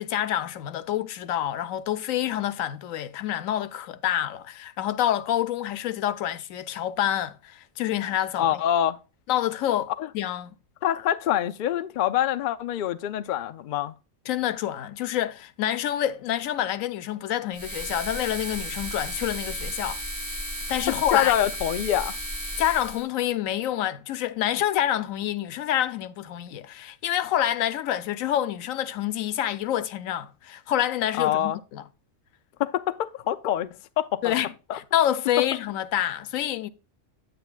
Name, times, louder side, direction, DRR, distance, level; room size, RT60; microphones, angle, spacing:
voice 1, 0.0-8.6 9.3-10.5 14.3-20.0 20.7-21.3 22.6-31.8 34.2-36.7, left 11 dB, 90° left, 1.0 m, -27 dB
voice 2, 8.4-9.0 10.0-10.1 10.8-14.0 20.9-22.2 31.2-31.6 32.6-33.7 34.0-34.3 34.7-34.8, left 11 dB, 70° left, 0.4 m, -25 dB
Buzzing Electric Lamp A, 17.5-23.0, equal, 15° right, 1.3 m, -34 dB
9.2 x 8.6 x 2.3 m
omnidirectional pair, 1.4 m